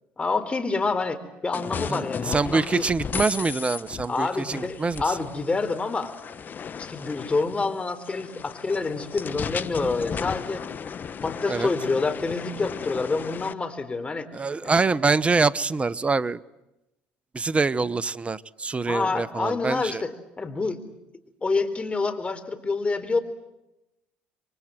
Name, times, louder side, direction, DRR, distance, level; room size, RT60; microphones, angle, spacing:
voice 1, 0.2-2.8 4.1-6.1 6.8-10.6 11.2-14.3 18.9-20.1 20.4-20.8 21.4-23.2, left 3 dB, 25° left, 9 dB, 4.0 m, -27 dB
sound 1, 1.5-13.5, left 6 dB, 40° left, 1.2 m, -35 dB
voice 2, 1.9-5.2 11.5-11.7 14.3-16.4 17.3-20.0, right 4 dB, 25° right, 20 dB, 1.0 m, -25 dB
28.5 x 23.5 x 7.8 m, 0.93 s
hypercardioid pair, 70°, 5 cm